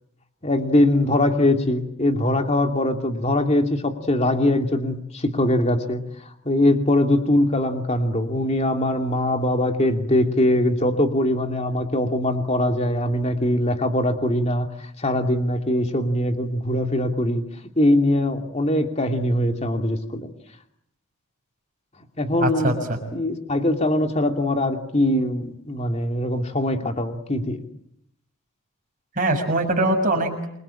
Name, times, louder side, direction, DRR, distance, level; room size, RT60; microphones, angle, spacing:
voice 1, 0.4-6.0 6.4-17.4 17.8-20.3 22.2-22.8 23.1-27.6, left 1 dB, 30° left, 5 dB, 2.7 m, -22 dB
voice 2, 22.4-23.0 29.2-30.5, right 1 dB, 35° right, 3 dB, 6.4 m, -22 dB
28.5 x 23.5 x 8.9 m, 0.79 s
head